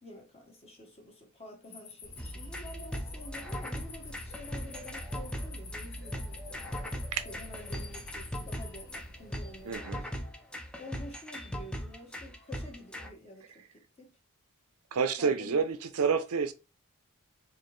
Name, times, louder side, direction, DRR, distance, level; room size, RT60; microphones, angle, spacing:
voice 1, 0.0-6.6 7.2-10.2 10.8-14.2 15.2-15.6, left 1 dB, 30° left, 0.9 m, -49 dB
sound 1, 1.6-9.7, left 6 dB, 65° left, 0.9 m, -50 dB
Bird, 2.0-9.8, equal, 45° left, 1.6 m, -52 dB
sound 2, 2.2-13.1, equal, 5° left, 0.4 m, -39 dB
voice 2, 9.6-10.0 14.9-16.5, right 6 dB, 80° right, 0.5 m, -29 dB
4.3 x 2.6 x 3.1 m
head